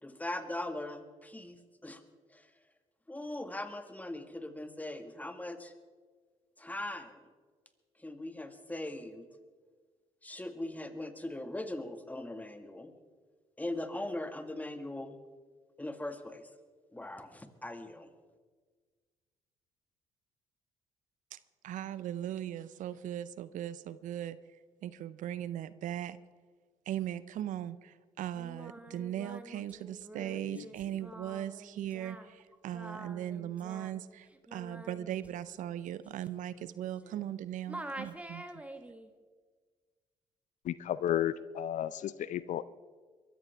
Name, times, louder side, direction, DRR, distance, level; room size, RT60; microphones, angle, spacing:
voice 1, 0.0-2.0 2.3-2.5 3.1-5.7 6.6-7.3 8.0-9.3 10.2-12.9 13.6-15.1 15.8-16.5 16.9-18.1, left 1 dB, 10° left, 7 dB, 1.8 m, -40 dB
voice 2, 21.6-24.4 24.8-26.2 26.9-38.6, right 11 dB, 65° right, 16 dB, 0.6 m, -39 dB
Singing, 28.3-37.4 37.7-39.1, right 1 dB, 10° right, 1.6 m, -47 dB
voice 3, 40.6-42.6, left 11 dB, 60° left, 16 dB, 0.5 m, -33 dB
22.5 x 14.0 x 3.5 m, 1.5 s
hypercardioid pair, 55°, 14 cm